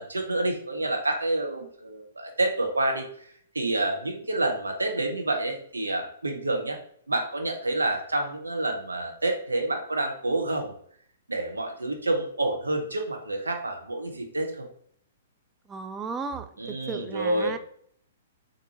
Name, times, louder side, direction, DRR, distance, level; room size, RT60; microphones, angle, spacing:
voice 1, 0.0-6.8 7.1-10.8 11.3-14.7 16.6-17.6, right 2 dB, 80° right, 3 dB, 0.7 m, -28 dB
voice 2, 15.7-17.6, right 4 dB, 15° right, 8 dB, 0.3 m, -35 dB
3.6 x 2.6 x 2.8 m, 0.63 s
figure-of-eight pair, 115°, 0 cm